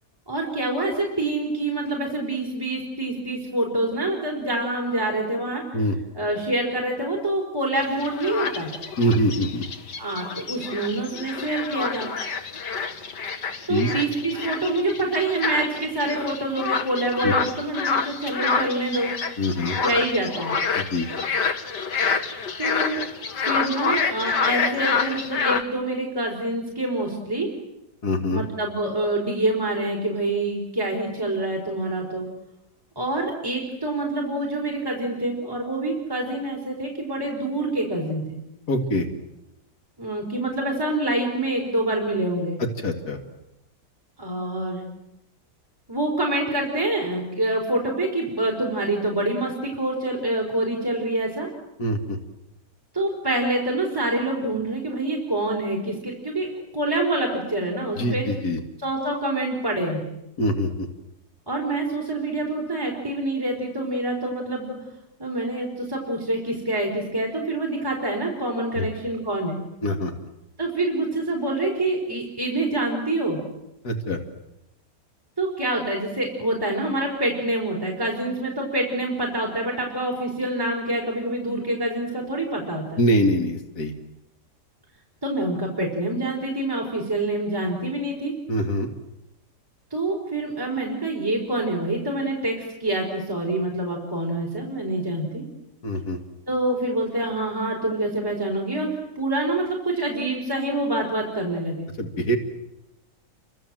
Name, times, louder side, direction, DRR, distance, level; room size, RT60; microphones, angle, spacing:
voice 1, 0.3-5.8 6.1-8.7 10.0-12.1 13.7-19.1 19.8-20.5 22.6-23.1 23.5-27.5 28.3-32.3 32.9-38.4 40.0-42.6 44.2-44.8 45.9-51.5 52.9-58.2 58.8-60.0 61.5-64.7 65.2-69.6 70.6-73.4 75.4-83.0 85.2-88.3 89.9-92.5 92.8-95.4 96.5-98.9 99.1-101.9, right 1 dB, 10° right, -1 dB, 4.8 m, -26 dB
sound 1, 7.7-25.6, left 5 dB, 80° left, 2.3 m, -27 dB
voice 2, 9.0-9.6 13.7-13.9 17.2-17.3 19.4-19.8 20.8-21.1 28.0-28.4 38.7-39.1 42.6-43.2 51.8-52.2 58.0-58.6 60.4-60.9 68.7-68.9 69.8-70.1 73.8-74.2 83.0-83.9 88.5-88.9 95.8-96.2 102.0-102.4, equal, 65° left, 4 dB, 2.9 m, -24 dB
29.5 x 25.5 x 7.8 m, 0.92 s
omnidirectional pair, 1.8 m